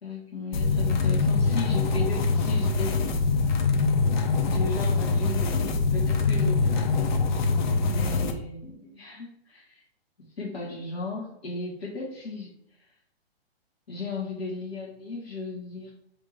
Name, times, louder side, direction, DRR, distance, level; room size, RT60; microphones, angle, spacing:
voice 1, 0.0-3.1 4.4-7.1 7.8-9.8 10.4-12.5 13.9-15.9, left 3 dB, 75° left, -6 dB, 1.7 m, -36 dB
sound 1, 0.5-8.3, left 4 dB, 50° left, 0.6 m, -24 dB
3.4 x 2.6 x 4.6 m, 0.73 s
hypercardioid pair, 140°, 31 cm